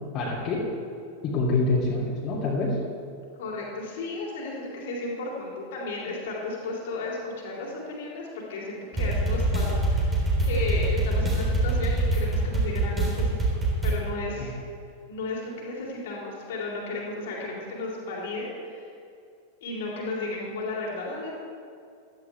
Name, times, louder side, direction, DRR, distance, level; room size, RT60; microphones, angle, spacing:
voice 1, 0.1-0.6 1.2-2.8 14.4-14.5, left 3 dB, 35° left, -5 dB, 3.0 m, -26 dB
voice 2, 3.4-10.2 10.4-13.4 13.8-14.5 15.1-18.8 19.6-21.3, left 3 dB, 55° left, -3 dB, 3.5 m, -34 dB
sound 1, 8.9-14.0, right 2 dB, 15° right, 3.8 m, -24 dB
16.0 x 13.0 x 3.5 m, 2.4 s
figure-of-eight pair, 90°, 0 cm